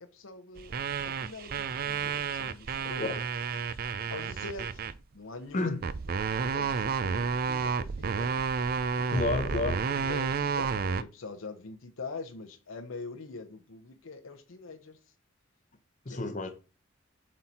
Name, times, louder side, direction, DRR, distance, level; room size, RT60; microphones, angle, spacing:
voice 1, 0.1-0.7 1.0-3.1 4.1-4.8 5.1-6.0 6.2-8.8 9.9-15.0 16.1-16.5, left 3 dB, 70° left, 0.8 m, -44 dB
sound 1, 0.6-5.0 5.8-11.0, right 5 dB, 45° right, 0.4 m, -31 dB
voice 2, 9.1-9.8 16.1-16.5, left 2 dB, 40° left, 0.9 m, -29 dB
7.6 x 4.2 x 4.2 m
head